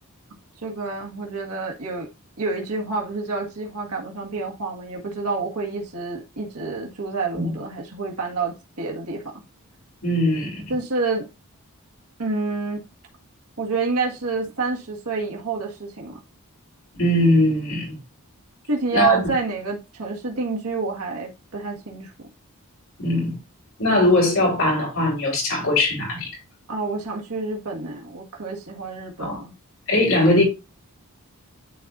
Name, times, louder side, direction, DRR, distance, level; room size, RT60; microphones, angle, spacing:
voice 1, 0.6-2.1 2.4-9.2 10.7-11.3 12.2-12.8 13.6-16.2 18.7-22.3 26.7-29.5, right 4 dB, 90° right, 1.8 m, -28 dB
voice 2, 10.0-10.6 17.0-18.0 18.9-19.2 23.0-23.3 23.8-26.3 29.2-29.4 29.9-30.4, left 1 dB, 65° left, 4.4 m, -20 dB
11.5 x 4.2 x 2.6 m
head